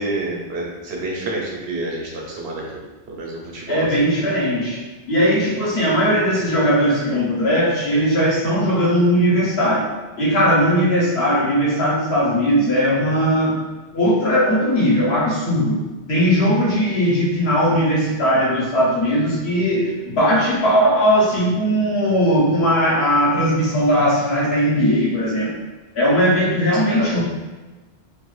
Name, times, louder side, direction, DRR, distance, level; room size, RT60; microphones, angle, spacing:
voice 1, 0.0-2.6 3.1-3.9 26.9-27.2, right 2 dB, 75° right, -2 dB, 0.9 m, -28 dB
voice 2, 3.7-9.9 10.2-13.6 13.9-15.8 16.1-25.6 25.9-27.2, equal, 75° left, -5 dB, 1.0 m, -18 dB
2.5 x 2.3 x 3.0 m, 1.2 s
omnidirectional pair, 1.1 m